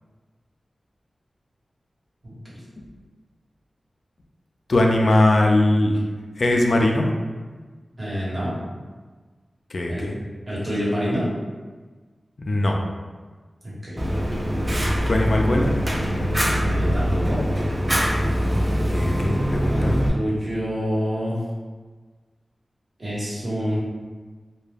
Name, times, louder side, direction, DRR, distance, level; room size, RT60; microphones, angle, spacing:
voice 1, 4.7-6.0 6.4-7.1 9.7-10.2 12.5-12.8 15.1-15.7 18.9-20.0, left 1 dB, 65° left, 1 dB, 0.3 m, -20 dB
voice 2, 8.0-8.6 9.9-10.1 10.5-11.3 13.6-14.0 16.6-17.4 19.7-21.4 23.0-23.8, equal, 50° right, -8 dB, 1.2 m, -27 dB
Fire, 14.0-20.1, equal, 20° right, 0.4 m, -23 dB
2.3 x 2.1 x 3.2 m, 1.4 s
cardioid pair, 55°, 0 cm